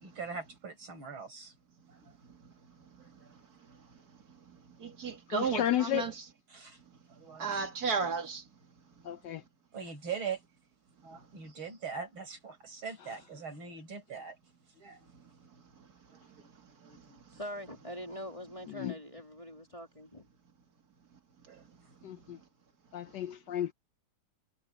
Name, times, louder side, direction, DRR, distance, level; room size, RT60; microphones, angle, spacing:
voice 1, 0.0-1.5 1.9-2.1 3.0-3.4 6.5-6.8 7.1-7.6 9.7-10.4 11.0-14.4 14.7-15.1 16.1-16.5 16.8-17.2 21.5-21.6, right 6 dB, 85° right, 6.4 m, -42 dB
voice 2, 4.8-6.2 7.4-8.4, right 5 dB, 50° right, 2.6 m, -33 dB
voice 3, 5.3-6.0 9.0-9.4 18.7-18.9 22.0-22.4 22.9-23.7, left 12 dB, 70° left, 1.1 m, -32 dB
voice 4, 17.3-20.2, equal, 15° left, 2.0 m, -43 dB
omnidirectional pair, 2.2 m